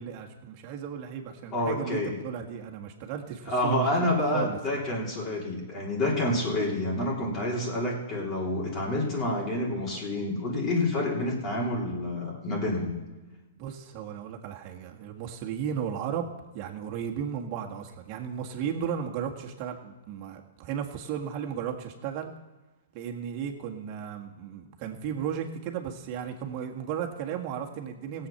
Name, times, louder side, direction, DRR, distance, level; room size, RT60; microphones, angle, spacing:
voice 1, 0.0-4.8 13.6-16.3 16.5-22.3 22.9-28.3, right 8 dB, 40° right, 2 dB, 1.7 m, -35 dB
voice 2, 1.5-2.1 3.5-13.0, left 1 dB, 30° left, -3 dB, 3.4 m, -28 dB
17.5 x 8.1 x 5.8 m, 1.2 s
hypercardioid pair, 140°, 0 cm